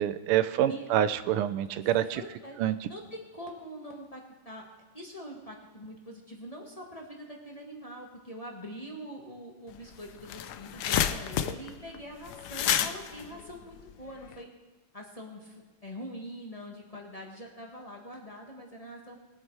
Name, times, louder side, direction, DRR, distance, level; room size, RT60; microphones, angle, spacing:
voice 1, 0.0-2.2 2.6-2.9, right 11 dB, 85° right, 13 dB, 1.5 m, -27 dB
voice 2, 2.1-2.6 2.9-4.6 4.9-14.5 14.9-19.2, equal, 20° left, -1 dB, 1.4 m, -44 dB
sound 1, 9.8-9.9 10.1-14.4, left 10 dB, 75° left, 0.9 m, -30 dB
21.0 x 7.6 x 4.7 m, 1.1 s
omnidirectional pair, 2.4 m